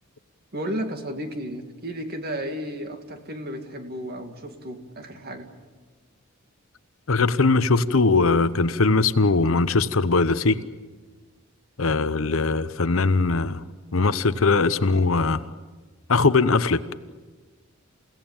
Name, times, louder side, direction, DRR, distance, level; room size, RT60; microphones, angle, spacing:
voice 1, 0.5-5.5, equal, 45° right, 6 dB, 2.4 m, -33 dB
voice 2, 7.1-10.6 11.8-13.6 13.9-15.4 16.1-16.9, left 3 dB, 65° left, 13 dB, 0.9 m, -20 dB
29.0 x 17.0 x 8.9 m, 1.4 s
head